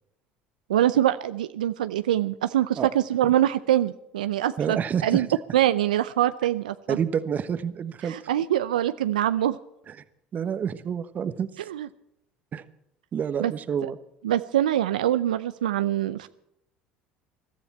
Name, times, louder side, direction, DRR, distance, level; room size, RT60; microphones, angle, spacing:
voice 1, 0.7-5.3 5.5-7.0 8.0-9.6 11.7-11.9 13.4-13.5 14.2-16.3, right 12 dB, 85° right, 12 dB, 0.5 m, -24 dB
voice 2, 4.6-5.4 6.9-8.1 9.9-10.0 10.3-11.5 12.5-12.6 13.1-14.0, right 7 dB, 40° right, 12 dB, 1.2 m, -28 dB
21.5 x 13.0 x 4.3 m, 0.81 s
hypercardioid pair, 70°, 4 cm